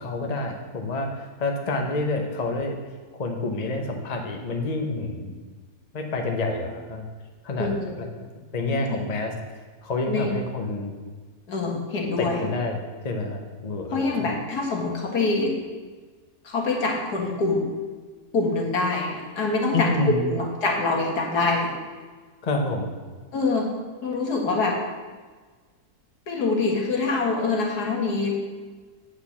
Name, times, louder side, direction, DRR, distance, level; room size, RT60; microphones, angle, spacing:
voice 1, 0.0-2.8 3.1-5.3 5.9-7.0 7.4-8.1 8.5-10.9 12.2-14.3 19.7-20.3 22.4-22.9, left 2 dB, 30° left, 3 dB, 0.9 m, -28 dB
voice 2, 7.6-7.9 10.1-10.4 11.5-12.4 13.9-15.5 16.4-17.7 18.3-21.7 23.3-23.7 24.0-24.8 26.3-28.3, left 3 dB, 75° left, -1 dB, 2.2 m, -25 dB
8.6 x 5.0 x 7.1 m, 1.4 s
omnidirectional pair, 1.7 m